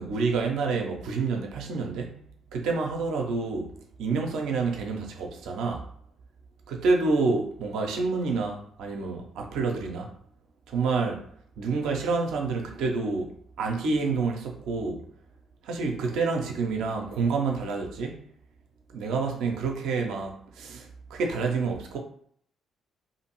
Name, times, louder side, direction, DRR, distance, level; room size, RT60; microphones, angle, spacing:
voice 1, 0.0-2.2 2.5-3.7 4.0-5.8 6.7-10.1 10.7-11.2 11.6-15.0 15.6-18.3 18.9-22.0, right 4 dB, 65° right, 0.5 m, -28 dB
2.6 x 2.5 x 2.9 m
figure-of-eight pair, 45°, 0 cm